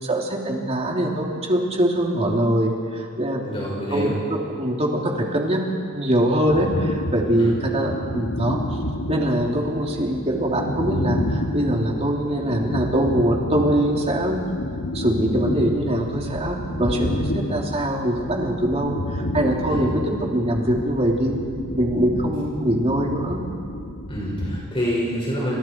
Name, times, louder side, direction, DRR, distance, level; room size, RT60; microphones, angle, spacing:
voice 1, 0.0-3.4 3.9-5.6 5.9-8.6 9.1-14.4 14.9-21.4 21.8-23.4, right 1 dB, 30° right, -1 dB, 3.3 m, -23 dB
voice 2, 3.4-4.2 7.4-7.6 19.7-19.9 24.1-25.5, equal, 25° left, -5 dB, 6.3 m, -27 dB
sound 1, 6.5-24.6, left 1 dB, 80° left, 1.8 m, -30 dB
29.5 x 28.0 x 4.7 m, 2.3 s
head